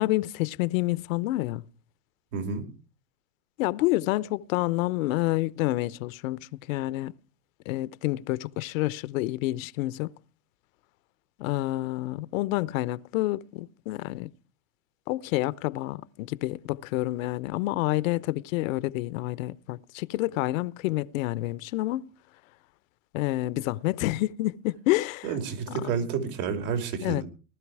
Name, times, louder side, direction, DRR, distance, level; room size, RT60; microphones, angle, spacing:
voice 1, 0.0-1.6 3.6-7.1 7.7-10.1 11.4-14.3 15.1-22.1 23.1-25.3 25.7-25.8 27.0-27.2, left 18 dB, 60° left, 0.9 m, -28 dB
voice 2, 2.3-2.7 25.2-27.2, right 6 dB, 70° right, 5.4 m, -30 dB
19.5 x 12.5 x 4.8 m
hypercardioid pair, 115°, 44 cm